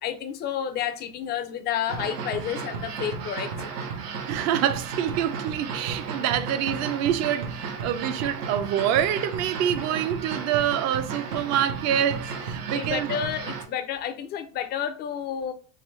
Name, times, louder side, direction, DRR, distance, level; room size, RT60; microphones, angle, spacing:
voice 1, 0.0-3.5 12.7-15.5, left 9 dB, 25° left, 0.4 m, -30 dB
sound 1, 1.9-13.7, right 5 dB, 80° right, 0.9 m, -34 dB
voice 2, 4.2-13.1, right 10 dB, 40° right, 0.4 m, -26 dB
3.8 x 2.9 x 3.1 m
hypercardioid pair, 105°, 47 cm